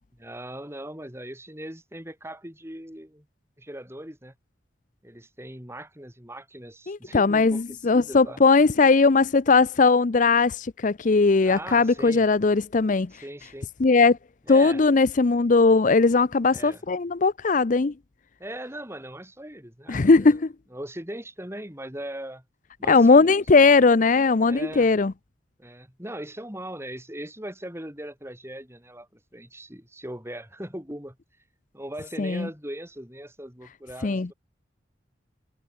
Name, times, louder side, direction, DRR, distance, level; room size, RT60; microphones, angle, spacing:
voice 1, 0.2-3.3 3.6-4.3 5.0-8.4 11.4-12.3 13.1-13.7 14.5-14.8 16.5-16.8 18.4-20.4 20.7-22.4 22.8-23.6 24.5-24.9 25.6-31.2 31.7-34.3, right 1 dB, 15° right, 5.5 m, -39 dB
voice 2, 6.9-13.1 13.8-14.2 14.5-17.9 19.9-20.5 22.9-25.1 32.2-32.5 34.0-34.3, left 4 dB, 45° left, 0.5 m, -19 dB
head